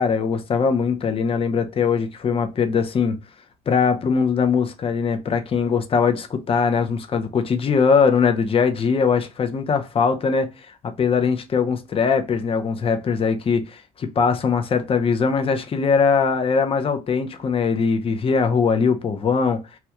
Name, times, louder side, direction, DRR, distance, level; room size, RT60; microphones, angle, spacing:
voice 1, 0.0-3.2 3.7-10.5 11.0-19.6, left 5 dB, 35° left, 0.6 m, -21 dB
2.9 x 2.2 x 3.4 m
cardioid pair, 110°, 17 cm